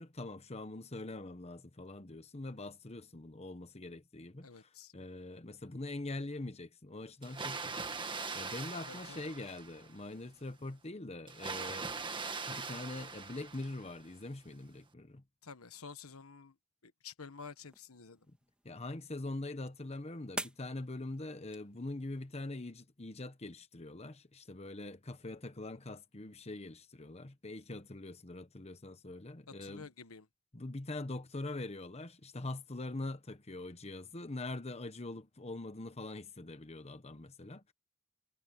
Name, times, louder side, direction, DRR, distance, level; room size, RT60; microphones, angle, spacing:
voice 1, 0.0-11.9 12.5-15.2 18.6-29.9 30.5-37.7, left 2 dB, 30° left, 1.1 m, -43 dB
voice 2, 4.4-4.9 8.9-9.2 15.4-16.5 16.8-18.3 29.6-30.3, left 5 dB, 85° left, 1.3 m, -50 dB
Water, 7.2-10.0 11.3-14.1, right 4 dB, 20° right, 1.7 m, -41 dB
sound 1, 17.5-22.5, right 1 dB, 5° right, 2.1 m, -49 dB
head